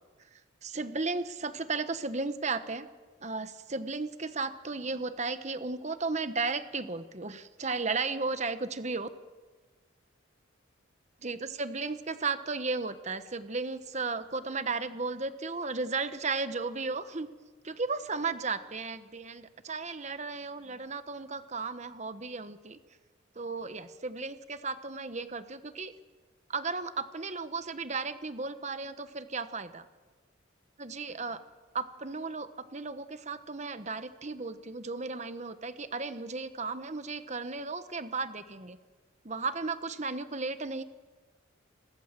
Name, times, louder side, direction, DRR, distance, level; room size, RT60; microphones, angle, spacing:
voice 1, 0.3-2.9 3.2-9.1 11.2-17.3 17.6-22.8 23.3-25.9 26.5-29.9 30.8-31.4 31.7-38.8 39.2-40.8, right 4 dB, 35° right, 11 dB, 1.1 m, -35 dB
29.5 x 22.0 x 7.5 m, 1.4 s
head